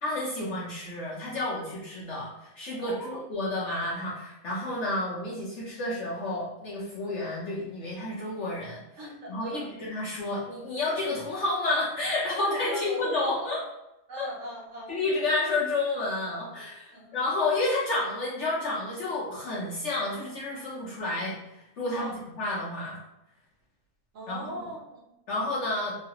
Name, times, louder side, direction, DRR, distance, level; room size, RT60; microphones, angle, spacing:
voice 1, 0.0-8.8 9.3-13.6 14.2-14.3 14.9-23.0 24.3-24.4 25.3-26.0, left 2 dB, 60° left, -5 dB, 0.8 m, -30 dB
voice 2, 2.8-3.2 9.0-9.7 12.7-13.5 14.1-15.3 16.9-17.2 21.9-22.2 24.1-25.0, equal, 60° right, -4 dB, 1.0 m, -40 dB
3.1 x 2.3 x 2.8 m, 0.90 s
omnidirectional pair, 1.7 m